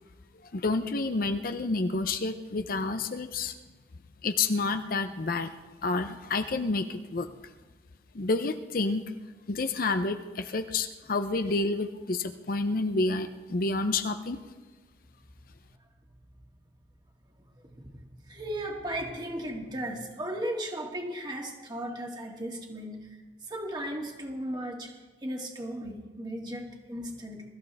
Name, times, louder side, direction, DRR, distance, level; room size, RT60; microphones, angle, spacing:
voice 1, 0.4-3.5 4.2-5.5 5.8-7.3 8.1-9.0 9.5-14.4, left 3 dB, 50° left, 8 dB, 0.6 m, -29 dB
voice 2, 17.6-23.0 23.5-24.9 25.2-27.4, right 1 dB, 25° right, 0 dB, 2.2 m, -36 dB
22.0 x 14.0 x 3.5 m, 1.3 s
head